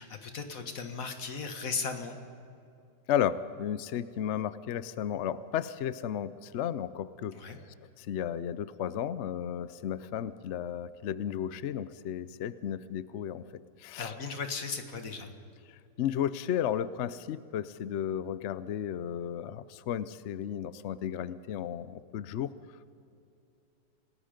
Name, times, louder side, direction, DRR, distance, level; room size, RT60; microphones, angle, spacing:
voice 1, 0.0-2.2 7.3-7.6 14.0-15.3, left 5 dB, 50° left, 6 dB, 2.0 m, -36 dB
voice 2, 3.1-7.4 8.0-13.4 13.8-14.1 16.0-22.5, left 9 dB, 75° left, 15 dB, 0.6 m, -33 dB
28.5 x 18.5 x 5.2 m, 2.6 s
omnidirectional pair, 1.9 m